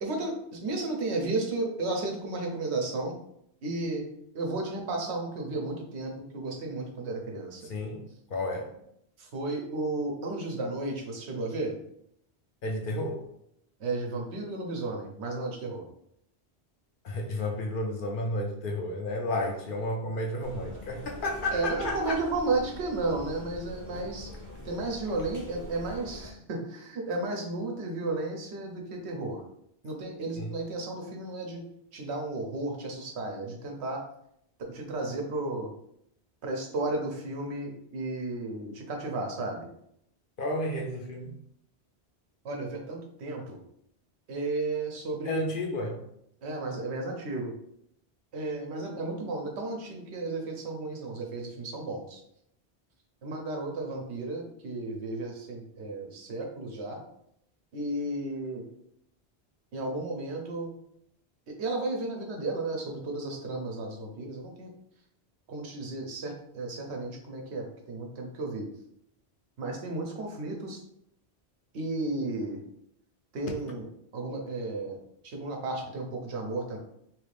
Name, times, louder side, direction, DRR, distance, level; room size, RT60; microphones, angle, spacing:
voice 1, 0.0-3.1 3.6-4.0 4.3-7.6 9.2-11.7 13.8-15.8 21.5-24.3 24.6-29.4 29.8-31.6 31.9-34.0 34.6-35.7 36.4-39.7 42.4-43.6 44.3-45.4 46.4-47.5 48.3-52.2 53.2-57.0 57.7-58.7 59.7-60.7 61.5-64.7 65.5-68.7 69.6-70.8 71.7-72.6 73.3-73.9 74.1-76.8, right 2 dB, 80° right, 2 dB, 1.0 m, -33 dB
voice 2, 7.7-8.7 12.6-13.2 17.0-22.2 30.4-30.5 40.4-41.3 45.2-46.0, left 1 dB, 60° left, 1 dB, 0.7 m, -32 dB
sound 1, 20.4-26.3, left 1 dB, 25° right, 0.5 m, -44 dB
3.1 x 2.5 x 3.2 m, 0.73 s
omnidirectional pair, 1.1 m